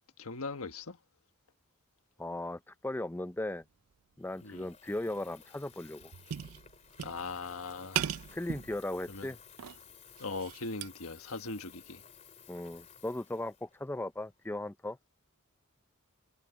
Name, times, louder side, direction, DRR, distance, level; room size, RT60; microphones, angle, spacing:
voice 1, 0.2-1.0 4.4-4.7 7.0-8.0 9.1-9.3 10.2-12.0, left 3 dB, 75° left, 1.6 m, -40 dB
voice 2, 2.2-3.6 4.2-6.1 8.3-9.4 12.5-15.0, left 1 dB, 10° left, 0.5 m, -37 dB
Water tap faucet / Fill (with liquid), 4.2-14.5, left 7 dB, 30° left, 2.8 m, -56 dB
sound 1, 4.5-4.7 5.1-5.2 5.6-7.5 8.0-9.2 9.6-10.9, right 10 dB, 75° right, 0.5 m, -39 dB
head